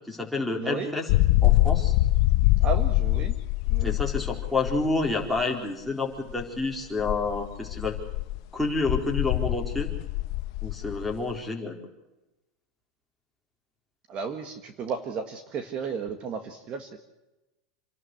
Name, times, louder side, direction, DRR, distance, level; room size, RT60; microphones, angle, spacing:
voice 1, 0.1-1.1 1.4-1.9 3.8-7.9 8.5-9.9 10.6-11.7, left 3 dB, ahead, -2 dB, 4.2 m, -29 dB
voice 2, 0.6-0.9 2.6-3.3 3.7-4.0 14.1-17.0, right 6 dB, 35° right, 8 dB, 1.7 m, -33 dB
sound 1, 1.1-5.4 6.3-6.4 7.0-11.4, left 16 dB, 60° left, 0.9 m, -24 dB
28.0 x 12.5 x 8.0 m, 1.0 s
supercardioid pair, 145°, 3 cm